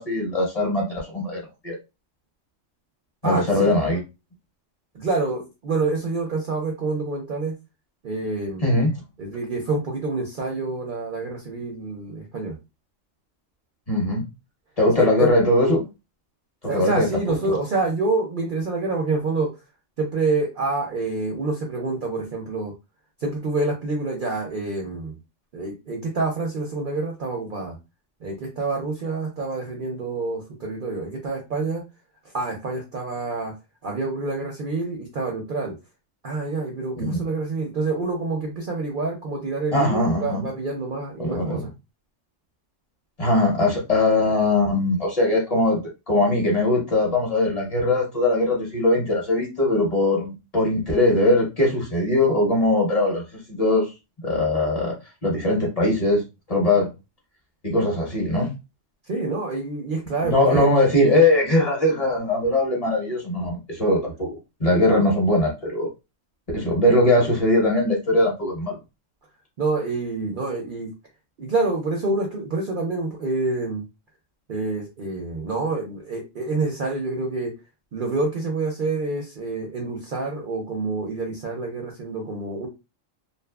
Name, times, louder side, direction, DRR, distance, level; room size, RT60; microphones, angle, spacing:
voice 1, 0.0-1.8 3.2-4.0 8.6-8.9 13.9-14.2 14.8-15.9 16.7-17.1 37.0-37.2 39.7-40.5 41.2-41.6 43.2-53.9 54.2-54.9 55.2-56.2 56.5-56.9 57.6-58.5 60.2-65.9 66.5-68.7, left 1 dB, 35° left, -2 dB, 0.9 m, -21 dB
voice 2, 3.2-3.7 4.9-7.5 8.0-8.7 9.2-12.6 15.0-15.3 16.7-19.5 20.0-22.7 23.2-25.1 25.5-27.8 28.2-31.8 32.3-33.5 33.8-35.8 36.2-41.7 59.1-60.7 69.6-70.9 71.4-73.8 74.5-77.5 77.9-82.7, right 3 dB, 55° right, 1 dB, 0.6 m, -27 dB
2.6 x 2.4 x 2.2 m, 0.26 s
omnidirectional pair, 1.3 m